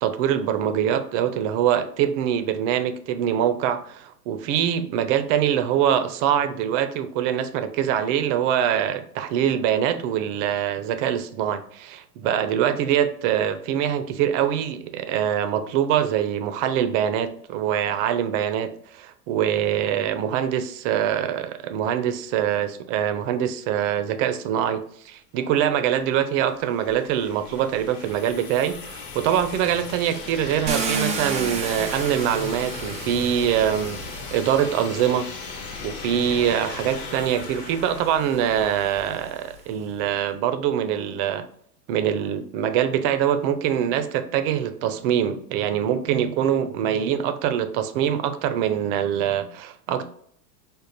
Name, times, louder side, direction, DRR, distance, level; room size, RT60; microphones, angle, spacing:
voice 1, 0.0-34.0 34.3-35.3 35.8-41.5 41.9-50.1, right 9 dB, 50° right, 0.6 m, -24 dB
sound 1, 25.9-39.7, left 5 dB, 65° left, 1.2 m, -37 dB
Car, 30.7-34.8 35.7-35.8 36.3-39.6, right 4 dB, 15° right, 0.3 m, -33 dB
5.2 x 2.1 x 4.0 m
hypercardioid pair, 110°, 49 cm